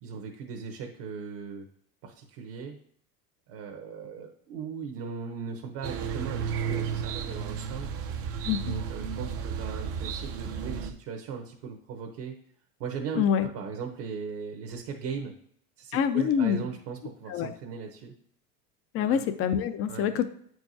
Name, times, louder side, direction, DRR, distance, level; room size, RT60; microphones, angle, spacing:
voice 1, 0.0-1.7 2.0-2.8 3.5-7.9 8.6-12.3 12.8-15.3 15.8-18.1 19.0-19.2 19.9-20.1, right 6 dB, 50° right, 3 dB, 1.0 m, -38 dB
sound 1, 5.8-10.9, right 7 dB, 30° right, 0.5 m, -33 dB
voice 2, 13.2-13.5 15.9-16.6 17.3-17.5 18.9-20.3, left 8 dB, 30° left, 11 dB, 0.5 m, -25 dB
8.6 x 4.7 x 2.7 m, 0.64 s
hypercardioid pair, 100°, 49 cm